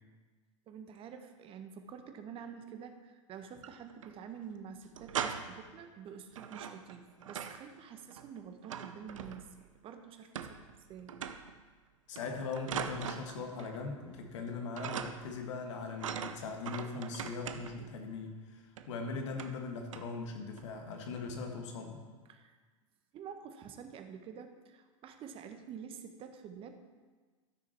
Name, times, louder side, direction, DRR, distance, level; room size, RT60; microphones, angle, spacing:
voice 1, 0.7-10.6 10.9-11.2 22.3-22.6 23.1-26.8, right 7 dB, 35° right, 7 dB, 1.1 m, -48 dB
sound 1, 3.4-4.1 4.4-4.5 4.8-5.7 6.3-7.7 7.9-9.7 10.4-10.8 11.1-11.6 12.2-13.8 14.1-14.5 14.8-15.4 16.0-17.9 18.8-18.9 19.3-19.6 19.9-20.2 20.6-20.8, right 8 dB, 75° right, 0.7 m, -41 dB
voice 2, 12.1-22.0, left 4 dB, 60° left, 3 dB, 1.7 m, -40 dB
13.5 x 6.3 x 4.4 m, 1.4 s
hypercardioid pair, 100°, 17 cm